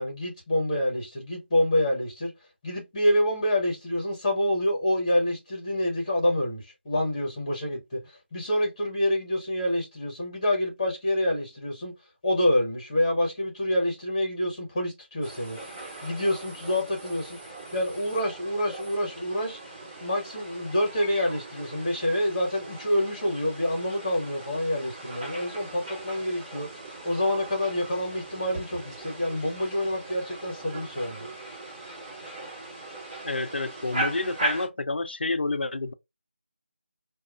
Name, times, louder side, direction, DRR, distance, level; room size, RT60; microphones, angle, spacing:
voice 1, 0.0-2.3 2.6-11.9 12.2-15.6 16.0-17.4 17.7-19.6 20.0-26.7 27.0-31.3, left 1 dB, 20° left, 1.0 m, -27 dB
sound 1, 15.2-34.7, right 2 dB, 30° right, 1.7 m, -39 dB
voice 2, 33.2-35.9, left 2 dB, 60° left, 0.4 m, -29 dB
4.5 x 2.3 x 2.3 m
figure-of-eight pair, 165°, 7 cm